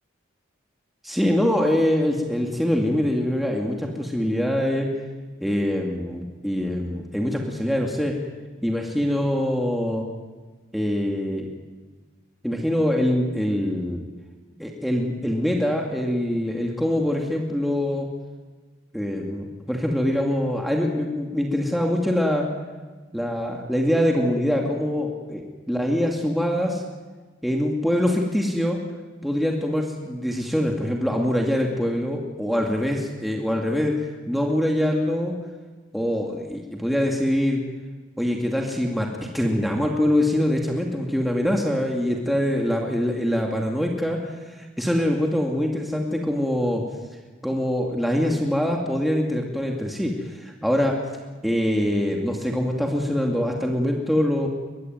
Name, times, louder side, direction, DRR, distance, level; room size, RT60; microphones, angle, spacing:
voice 1, 1.0-4.9 5.4-8.1 8.6-10.0 10.7-11.5 12.4-14.0 14.6-18.1 18.9-22.5 23.1-26.8 27.4-28.8 29.2-33.9 34.3-35.3 35.9-37.6 38.2-46.8 47.4-51.0 51.4-54.5, equal, ahead, 0 dB, 2.4 m, -24 dB
23.0 x 22.0 x 9.4 m, 1.3 s
head